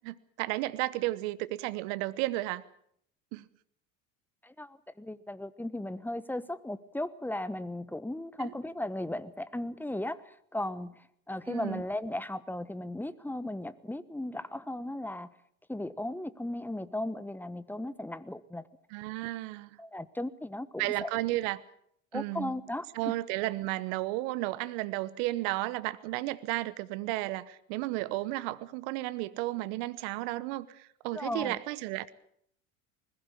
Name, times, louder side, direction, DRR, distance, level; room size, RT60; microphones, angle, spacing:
voice 1, 0.0-2.6 3.3-3.4 8.4-8.5 11.5-11.8 18.9-19.8 20.8-21.6 22.1-22.5 22.9-32.1, right 18 dB, 65° right, 17 dB, 1.1 m, -33 dB
voice 2, 4.4-15.3 15.7-18.7 19.8-21.1 22.1-23.1 31.1-31.6, left 1 dB, 5° left, 16 dB, 1.1 m, -36 dB
20.5 x 15.5 x 8.5 m, 0.70 s
hypercardioid pair, 70°, 41 cm